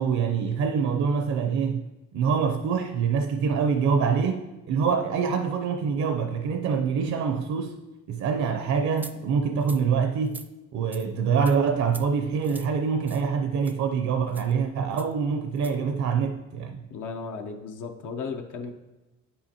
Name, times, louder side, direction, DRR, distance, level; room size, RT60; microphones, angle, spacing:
voice 1, 0.0-1.9 2.1-7.8 8.1-10.4 10.7-16.8, right 6 dB, 65° right, 0.6 m, -25 dB
sound 1, 9.0-9.1 9.6-9.8 10.2-10.5 10.9-11.1 11.4-11.6 11.9-12.1 12.4-12.7 13.1-13.3 13.6-13.7 14.3-14.5 15.0-15.1 15.5-15.7, right 2 dB, 5° right, 0.3 m, -44 dB
voice 2, 16.9-18.7, left 5 dB, 80° left, 0.7 m, -35 dB
8.5 x 5.5 x 2.8 m
cardioid pair, 90°, 30 cm